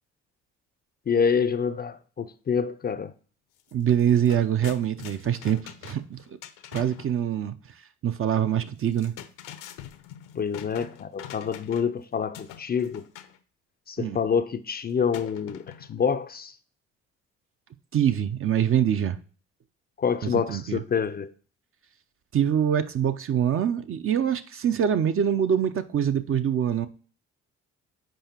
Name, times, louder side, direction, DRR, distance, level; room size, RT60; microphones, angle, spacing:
voice 1, 1.1-3.1 10.4-13.0 13.9-16.5 20.0-21.3, left 6 dB, 30° left, 0.5 m, -27 dB
sound 1, 3.6-3.7 4.0-7.1 8.8-12.0 12.3-13.4 15.1-16.0, left 11 dB, 65° left, 0.7 m, -44 dB
voice 2, 3.7-6.2 6.7-7.5 8.0-9.1 14.0-14.2 17.9-19.2 20.2-20.8 22.3-26.9, right 9 dB, 40° right, 0.6 m, -24 dB
7.6 x 4.9 x 2.9 m
hypercardioid pair, 50°, 34 cm